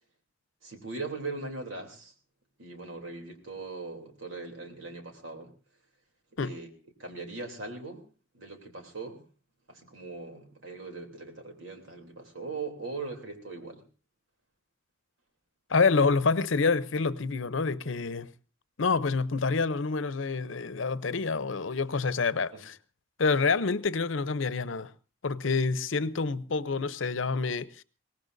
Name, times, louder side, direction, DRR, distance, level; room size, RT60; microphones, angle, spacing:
voice 1, 0.6-2.1 2.6-5.5 6.4-6.7 7.0-8.0 8.3-9.2 9.7-13.8 22.5-22.6, right 3 dB, 85° right, 3.1 m, -40 dB
voice 2, 15.7-18.3 18.8-22.8 23.2-24.9 25.2-27.8, left 4 dB, 85° left, 0.7 m, -27 dB
23.0 x 18.0 x 2.6 m
head